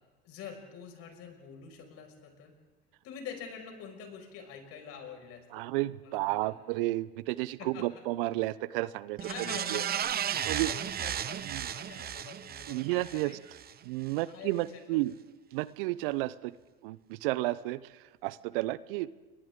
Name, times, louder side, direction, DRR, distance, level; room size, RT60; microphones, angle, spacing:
voice 1, 0.2-2.5 3.0-5.7 6.0-6.5 7.6-7.9 9.2-9.8 10.5-13.4 14.2-14.6 14.9-15.0, left 7 dB, 55° left, 3 dB, 5.7 m, -46 dB
voice 2, 5.5-9.2 9.5-9.8 10.4-10.7 11.5-11.7 12.7-13.3 13.8-15.1 15.5-16.5 16.8-17.8 18.2-19.1, right 18 dB, 65° right, 19 dB, 0.7 m, -32 dB
sound 1, 9.2-13.7 14.1-14.2, right 9 dB, 30° right, 0.9 m, -34 dB
29.0 x 24.0 x 3.7 m, 1.2 s
hypercardioid pair, 80°, 29 cm